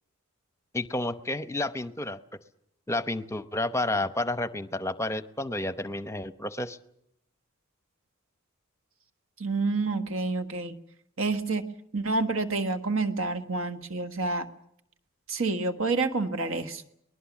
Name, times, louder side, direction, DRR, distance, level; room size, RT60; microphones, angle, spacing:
voice 1, 0.7-2.2 2.9-6.8, left 2 dB, 15° left, 12 dB, 0.8 m, -30 dB
voice 2, 9.4-10.7 11.2-11.6 11.9-14.5 15.3-16.8, right 3 dB, 70° right, 8 dB, 1.6 m, -28 dB
23.5 x 20.5 x 7.3 m, 0.76 s
head